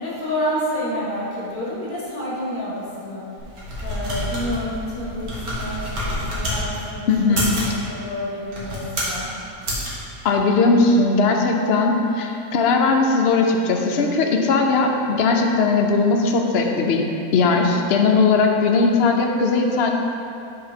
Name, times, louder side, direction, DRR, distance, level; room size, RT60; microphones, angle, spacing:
voice 1, 0.0-3.2 3.8-7.4 7.7-9.3, equal, 10° left, -6 dB, 1.4 m, -29 dB
sound 1, 3.4-6.6 7.2-7.7 8.4-9.2 9.6-9.9, equal, 90° right, 2.0 m, -27 dB
voice 2, 7.1-7.5 10.2-17.0 17.3-19.9, left 4 dB, 55° left, 2 dB, 0.8 m, -18 dB
7.7 x 4.4 x 5.2 m, 2.7 s
omnidirectional pair, 1.5 m